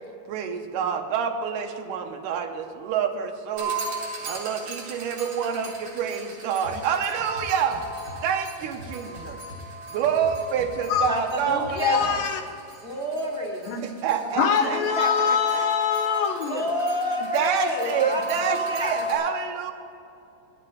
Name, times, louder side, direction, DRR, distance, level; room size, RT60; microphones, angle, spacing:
voice 1, 0.3-3.7 4.2-7.8 8.2-9.4 9.9-12.0 13.8-15.7 17.3-19.7, right 7 dB, 75° right, 5 dB, 2.1 m, -27 dB
sound 1, 3.6-19.2, right 1 dB, 60° right, 3.9 m, -36 dB
sound 2, 6.6-6.7 7.2-8.2 8.6-9.7 10.0-12.2, equal, 30° right, 4.1 m, -42 dB
voice 2, 11.0-12.2 12.8-13.8 14.3-15.3 16.4-18.2 18.5-19.1, equal, 5° right, -4 dB, 0.8 m, -29 dB
voice 3, 11.8-12.4 13.7-13.8 14.4-16.6, left 7 dB, 80° left, 6 dB, 2.5 m, -23 dB
11.5 x 7.7 x 9.1 m, 2.6 s
omnidirectional pair, 4.1 m